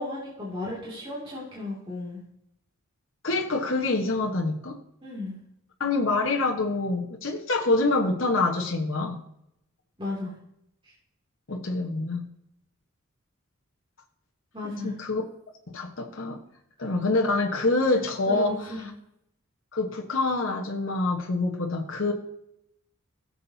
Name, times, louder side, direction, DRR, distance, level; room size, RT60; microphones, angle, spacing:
voice 1, 0.0-2.2 5.0-5.4 10.0-10.3 10.8-10.9 14.5-15.0 18.3-18.8, left 2 dB, 25° right, -5 dB, 2.6 m, -34 dB
voice 2, 3.2-4.8 5.8-9.2 11.5-12.2 14.8-15.2 15.7-16.4 16.8-18.7 19.7-22.1, left 2 dB, 65° left, 0 dB, 1.3 m, -26 dB
16.5 x 7.5 x 2.8 m, 0.77 s
head